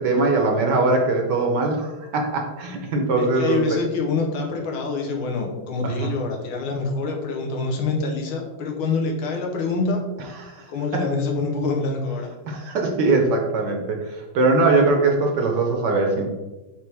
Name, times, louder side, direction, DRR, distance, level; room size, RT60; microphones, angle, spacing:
voice 1, 0.0-3.8 5.8-6.1 10.4-10.6 10.9-11.0 12.5-16.3, right 3 dB, 65° right, 2 dB, 1.3 m, -21 dB
voice 2, 3.2-10.0 10.7-12.3, left 4 dB, 80° left, 2 dB, 1.8 m, -26 dB
8.3 x 3.5 x 3.4 m, 1.1 s
omnidirectional pair, 2.3 m